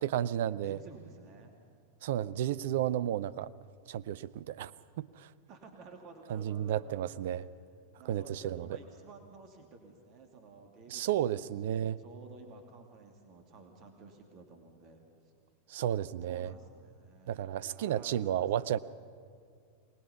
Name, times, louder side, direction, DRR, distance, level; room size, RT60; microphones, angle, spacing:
voice 1, 0.0-0.8 2.0-3.5 3.9-4.7 5.0-5.3 6.3-7.5 8.1-8.7 10.9-12.0 15.7-16.5 17.3-18.8, right 11 dB, 55° right, 18 dB, 0.5 m, -32 dB
voice 2, 0.6-1.6 5.5-7.1 8.0-15.0 16.2-18.7, right 3 dB, 35° right, 4 dB, 2.5 m, -53 dB
23.5 x 19.5 x 5.7 m, 2.2 s
figure-of-eight pair, 90°, 0 cm